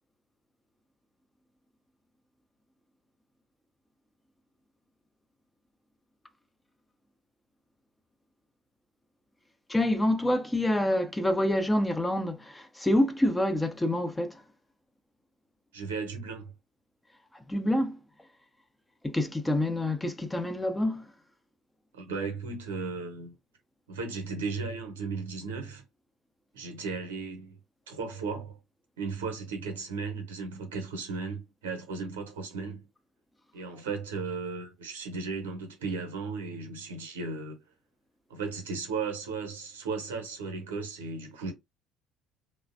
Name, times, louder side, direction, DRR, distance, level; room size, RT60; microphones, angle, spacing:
voice 1, 9.7-14.4 17.5-18.0 19.0-21.1, left 1 dB, 10° left, 0.6 m, -27 dB
voice 2, 15.7-16.5 21.9-23.4 23.9-25.8 26.5-27.6 27.9-28.6 29.0-32.9 33.5-37.6 38.3-41.5, right 4 dB, 80° right, 0.8 m, -35 dB
3.2 x 2.1 x 2.5 m
figure-of-eight pair, 55°, 0 cm